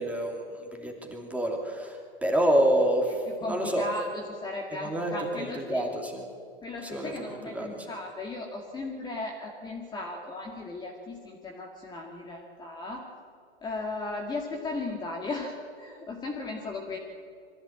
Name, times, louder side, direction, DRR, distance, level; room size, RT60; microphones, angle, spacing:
voice 1, 0.0-3.9 4.8-6.2 6.8-7.1 7.4-7.9, right 1 dB, 5° right, 1 dB, 2.8 m, -28 dB
voice 2, 3.3-5.8 6.6-13.0 13.6-17.0, left 2 dB, 15° left, 0 dB, 2.1 m, -36 dB
23.0 x 14.5 x 8.7 m, 2.2 s
hypercardioid pair, 135°, 33 cm